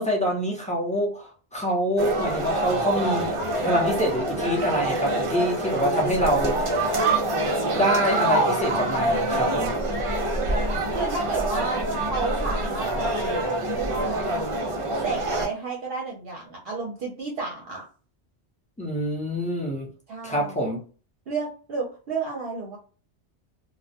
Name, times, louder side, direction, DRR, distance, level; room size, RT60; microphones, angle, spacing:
voice 1, 0.0-3.3 3.6-7.0 7.7-9.7 18.8-19.9 20.2-20.8, equal, 10° left, -3 dB, 0.6 m, -26 dB
sound 1, 2.0-15.5, right 1 dB, 45° right, 0.4 m, -25 dB
voice 2, 10.9-11.8 12.1-13.1 13.7-14.5 15.0-17.8 20.1-20.6 21.3-22.8, right 4 dB, 65° right, -2 dB, 0.8 m, -31 dB
2.3 x 2.1 x 2.7 m, 0.38 s
omnidirectional pair, 1.2 m